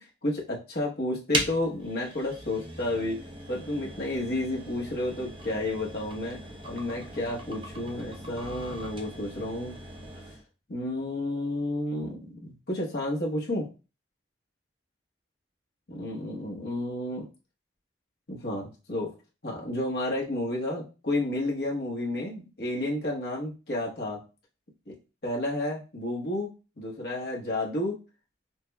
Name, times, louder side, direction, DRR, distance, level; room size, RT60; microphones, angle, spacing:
voice 1, 0.2-3.2 3.5-6.4 6.6-9.7 10.7-13.7 15.9-17.3 18.3-19.1 19.4-24.2 24.9-25.0 25.2-26.5 26.8-28.0, left 1 dB, 60° left, -3 dB, 1.1 m, -31 dB
sound 1, 1.3-10.5, right 1 dB, 30° right, 0.6 m, -39 dB
5.8 x 2.2 x 2.2 m, 0.31 s
head